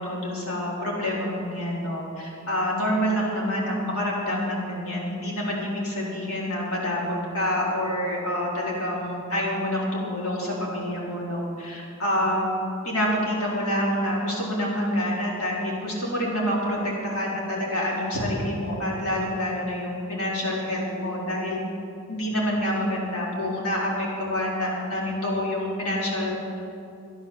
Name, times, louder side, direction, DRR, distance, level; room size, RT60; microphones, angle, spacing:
voice 1, 0.0-12.6 12.8-21.6 22.1-26.6, equal, 85° left, -4 dB, 4.2 m, -27 dB
14.0 x 10.5 x 7.5 m, 2.7 s
head